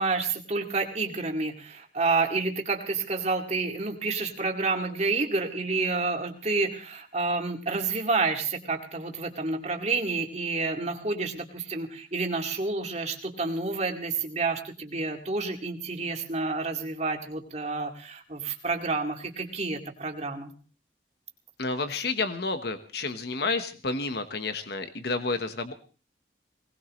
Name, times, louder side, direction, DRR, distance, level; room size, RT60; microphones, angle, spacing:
voice 1, 0.0-20.5, right 3 dB, 35° right, 3 dB, 2.3 m, -29 dB
voice 2, 21.6-25.7, left 3 dB, 60° left, 9 dB, 1.3 m, -30 dB
21.5 x 18.5 x 3.2 m, 0.36 s
head